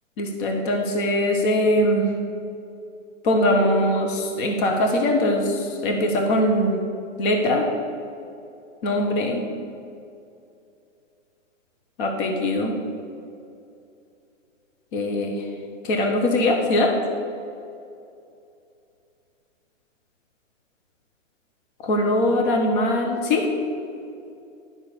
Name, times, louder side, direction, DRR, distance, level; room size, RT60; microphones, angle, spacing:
voice 1, 0.2-2.0 3.2-6.8 7.2-7.7 8.8-9.4 12.0-12.7 14.9-15.3 15.8-16.9 21.8-23.5, left 1 dB, 40° left, 2 dB, 1.4 m, -21 dB
10.5 x 5.8 x 6.9 m, 2.6 s
hypercardioid pair, 145°, 38 cm